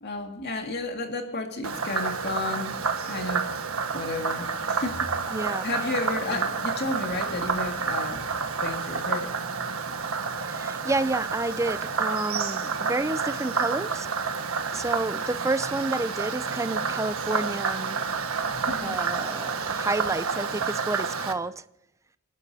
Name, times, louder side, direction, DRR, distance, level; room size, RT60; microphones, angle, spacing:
voice 1, 0.0-2.8 3.1-3.5 3.9-5.1 5.4-8.3 8.6-9.3 18.7-19.0, left 2 dB, 55° left, 2.2 m, -32 dB
Frog, 1.6-21.3, right 5 dB, 90° right, 1.5 m, -29 dB
voice 2, 5.3-5.7 6.3-6.4 10.4-14.1 14.7-18.0 18.8-21.6, right 2 dB, 15° right, 0.5 m, -30 dB
28.0 x 12.0 x 2.8 m
head